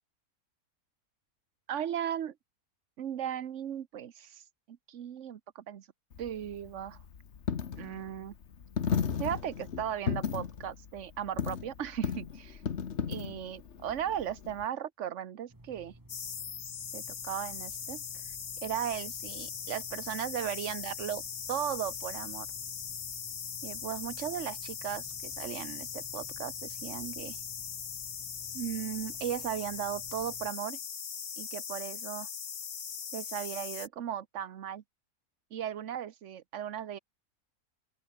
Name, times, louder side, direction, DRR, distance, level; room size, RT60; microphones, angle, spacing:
voice 1, 1.7-2.3 3.0-4.4 4.7-5.9 6.2-7.0 7.8-8.3 9.2-12.6 13.1-15.9 16.9-18.0 18.6-21.2 21.5-22.5 23.6-27.4 28.5-30.8 31.4-32.3 33.1-34.8 35.5-37.0, right 9 dB, 55° right, 1.1 m, -37 dB
Coin (dropping), 6.1-14.7, left 7 dB, 50° left, 1.4 m, -35 dB
sound 1, 15.5-30.5, right 1 dB, 10° right, 2.4 m, -55 dB
sound 2, 16.1-33.9, left 7 dB, 80° left, 2.0 m, -40 dB
open air
omnidirectional pair, 1.6 m